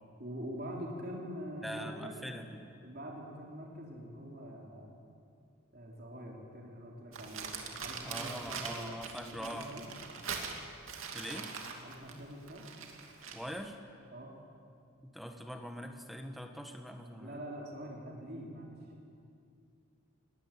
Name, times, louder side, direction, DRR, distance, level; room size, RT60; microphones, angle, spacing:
voice 1, 0.2-2.3 2.8-4.9 5.7-8.9 9.2-9.9 11.1-11.5 11.8-12.7 14.1-14.3 17.2-18.8, equal, 45° right, -2 dB, 3.6 m, -44 dB
voice 2, 1.6-2.6 8.0-9.7 11.1-11.5 13.3-13.8 15.0-17.4, equal, ahead, 4 dB, 1.6 m, -43 dB
Crumpling crinkling, 7.1-13.5, right 5 dB, 85° right, 2.6 m, -42 dB
20.5 x 20.0 x 9.0 m, 2.4 s
head